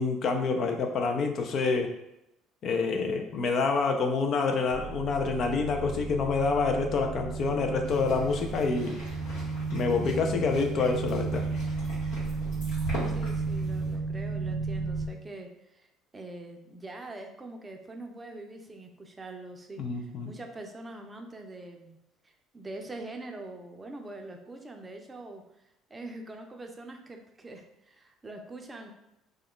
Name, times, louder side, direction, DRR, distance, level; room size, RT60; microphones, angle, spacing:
voice 1, 0.0-1.9 2.6-9.0 9.7-11.5 19.8-20.3, left 4 dB, 55° left, 4 dB, 0.4 m, -27 dB
sound 1, 4.7-15.1, right 4 dB, 90° right, 0.3 m, -33 dB
sound 2, 7.8-14.0, equal, 85° left, 1.2 m, -41 dB
voice 2, 13.1-15.9 16.1-22.0 22.2-28.9, right 2 dB, 25° right, 3 dB, 0.5 m, -44 dB
2.4 x 2.1 x 3.6 m, 0.89 s
supercardioid pair, 75°, 0 cm